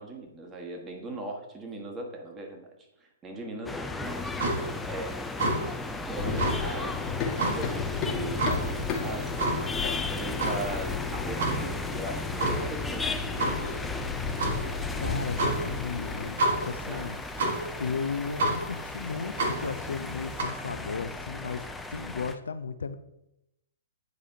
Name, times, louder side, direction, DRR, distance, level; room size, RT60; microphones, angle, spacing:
voice 1, 0.0-2.7 3.0-4.4 4.8-5.2 6.0-7.1 7.4-14.1 14.4-14.6 16.8-17.2, right 2 dB, 20° right, 2 dB, 1.4 m, -39 dB
sound 1, 3.7-22.4, left 3 dB, 10° left, 0.4 m, -36 dB
sound 2, 4.1-20.4, right 2 dB, 60° right, 1.4 m, -32 dB
Run, 6.2-16.2, left 5 dB, 30° left, 1.3 m, -34 dB
voice 2, 15.0-16.4 16.6-17.2 17.8-21.6 21.9-23.0, left 5 dB, 75° left, 11 dB, 0.5 m, -34 dB
9.3 x 4.9 x 2.8 m, 0.86 s
figure-of-eight pair, 120°, 0 cm